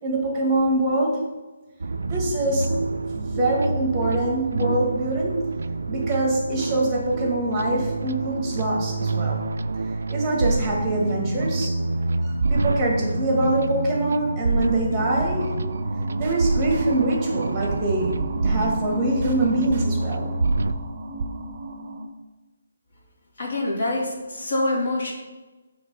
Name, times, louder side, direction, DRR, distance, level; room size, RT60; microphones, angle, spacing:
voice 1, 0.0-1.2 2.1-2.7 3.1-5.3 5.9-9.4 10.1-11.7 12.2-15.6 16.2-20.3, right 1 dB, 10° right, -2 dB, 1.3 m, -24 dB
sound 1, 1.8-20.7, right 3 dB, 75° right, 0.3 m, -27 dB
sound 2, 14.9-22.1, right 2 dB, 30° right, 0.7 m, -34 dB
voice 2, 23.4-25.1, left 2 dB, 50° left, -3 dB, 2.3 m, -25 dB
7.1 x 3.4 x 5.2 m, 1.2 s
hypercardioid pair, 175°, 0 cm